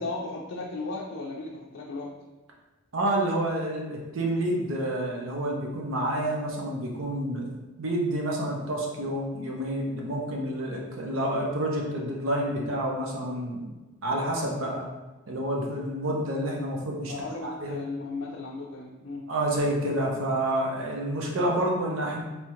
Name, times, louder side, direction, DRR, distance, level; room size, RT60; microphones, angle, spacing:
voice 1, 0.0-2.1 17.1-19.3, left 3 dB, 70° left, -2 dB, 0.4 m, -35 dB
voice 2, 2.9-7.5 7.8-13.6 14.0-14.9 15.3-17.1 17.4-17.7 19.3-22.2, right 1 dB, 75° right, -1 dB, 0.8 m, -28 dB
3.4 x 2.8 x 3.0 m, 1.2 s
head